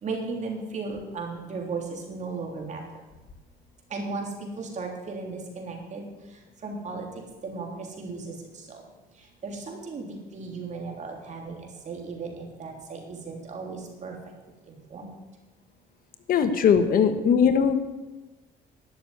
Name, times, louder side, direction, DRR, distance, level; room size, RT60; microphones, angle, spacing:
voice 1, 0.0-2.8 3.9-4.3 4.6-6.0 6.6-7.1 7.4-7.7 8.0-8.3 9.4-11.6 11.9-14.1 14.7-15.1, right 4 dB, 45° right, 1 dB, 3.4 m, -35 dB
voice 2, 16.3-17.7, left 7 dB, 60° left, 9 dB, 1.3 m, -20 dB
11.5 x 7.1 x 9.4 m, 1.1 s
cardioid pair, 110°, 17 cm